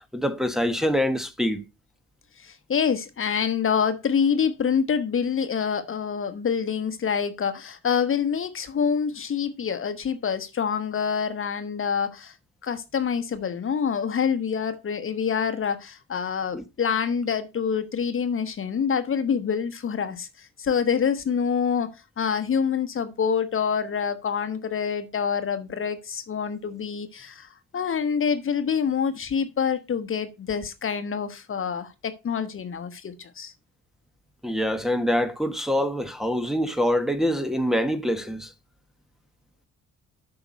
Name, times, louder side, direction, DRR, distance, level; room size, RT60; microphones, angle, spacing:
voice 1, 0.1-1.6 16.5-16.6 34.4-38.5, equal, ahead, 1.3 m, -25 dB
voice 2, 2.4-12.3 12.6-33.5, left 7 dB, 45° left, 1.1 m, -26 dB
8.7 x 5.9 x 5.1 m
cardioid pair, 90°, 30 cm